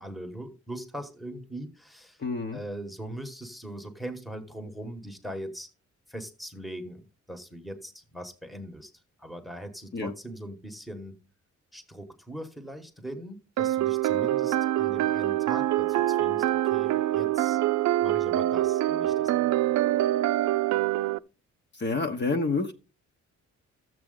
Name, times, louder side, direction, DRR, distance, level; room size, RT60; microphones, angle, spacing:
voice 1, 0.0-2.2 2.5-5.7 6.1-8.9 9.2-11.3 11.7-17.6 18.0-19.7, right 1 dB, ahead, 1.2 m, -41 dB
voice 2, 2.2-2.6 9.9-10.1 21.7-22.7, left 3 dB, 35° left, 1.0 m, -28 dB
sound 1, 13.6-21.2, right 14 dB, 75° right, 0.5 m, -25 dB
13.0 x 7.6 x 3.8 m
wide cardioid pair, 140°, 29 cm